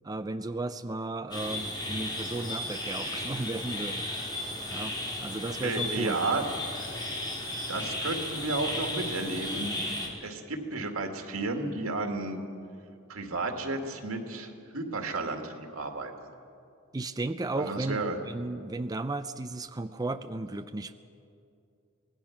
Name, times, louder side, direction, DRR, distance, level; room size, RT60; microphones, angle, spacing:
voice 1, 0.0-4.0 4.7-6.2 16.9-20.9, right 2 dB, 20° right, 9 dB, 0.5 m, -34 dB
sound 1, 1.3-10.1, left 1 dB, 20° left, 3.4 m, -35 dB
voice 2, 5.6-6.4 7.7-9.7 10.2-12.4 13.1-16.1 17.6-18.2, right 3 dB, 85° right, 4 dB, 2.1 m, -32 dB
25.0 x 18.5 x 5.9 m, 2.5 s
head